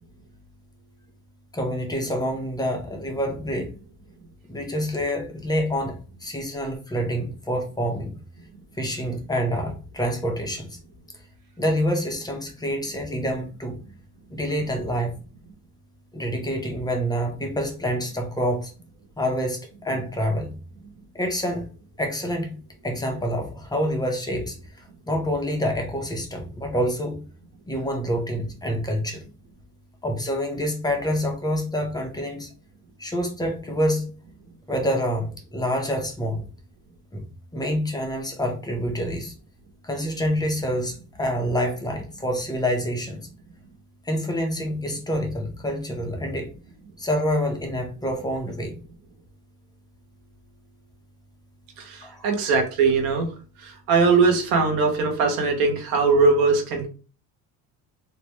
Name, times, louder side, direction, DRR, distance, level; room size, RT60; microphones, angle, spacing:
voice 1, 1.5-3.7 4.5-8.1 8.8-10.8 11.6-13.8 14.3-15.1 16.1-18.7 19.2-20.5 21.1-21.6 22.0-22.6 22.8-24.6 25.1-27.2 27.7-29.2 30.0-32.5 33.0-34.1 34.7-36.5 37.1-37.2 37.5-39.3 39.8-43.3 44.0-46.5 47.0-48.8 52.0-52.2, equal, 10° left, 1 dB, 1.0 m, -27 dB
voice 2, 51.8-53.3 53.6-56.9, right 4 dB, 80° right, 2 dB, 1.3 m, -21 dB
3.4 x 2.9 x 3.1 m, 0.36 s
cardioid pair, 110°, 34 cm